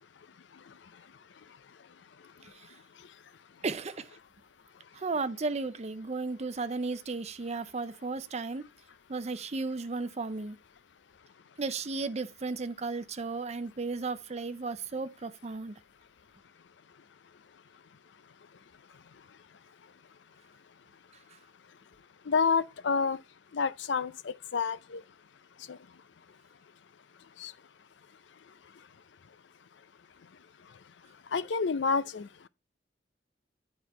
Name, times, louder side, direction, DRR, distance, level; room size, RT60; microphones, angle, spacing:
voice 1, 3.6-4.1 4.9-8.7 9.1-10.6 11.6-15.8, right 3 dB, 35° right, 0.6 m, -34 dB
voice 2, 22.3-23.2 23.5-25.0 25.7-25.8 27.4-27.5 31.3-32.5, left 5 dB, 70° left, 0.5 m, -29 dB
10.0 x 4.3 x 4.5 m
head